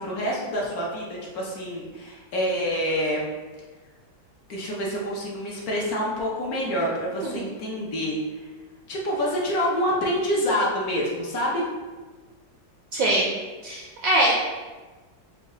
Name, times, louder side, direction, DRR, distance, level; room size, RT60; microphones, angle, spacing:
voice 1, 0.0-3.2 4.5-8.2 8.9-11.6, equal, 60° left, -3 dB, 1.1 m, -27 dB
voice 2, 12.9-13.3 13.6-14.3, right 1 dB, 70° right, -3 dB, 0.8 m, -22 dB
5.2 x 2.3 x 3.7 m, 1.3 s
omnidirectional pair, 1.9 m